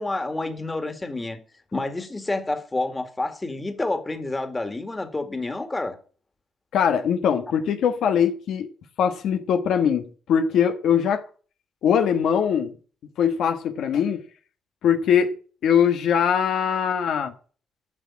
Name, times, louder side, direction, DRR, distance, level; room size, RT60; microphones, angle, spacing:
voice 1, 0.0-1.4 1.7-6.0, left 2 dB, 20° left, 2.1 m, -29 dB
voice 2, 6.7-8.7 9.0-11.2 11.8-12.7 13.2-14.2 14.8-15.3 15.6-17.3, left 8 dB, 75° left, 1.3 m, -21 dB
10.0 x 6.2 x 8.7 m
cardioid pair, 90°, 0 cm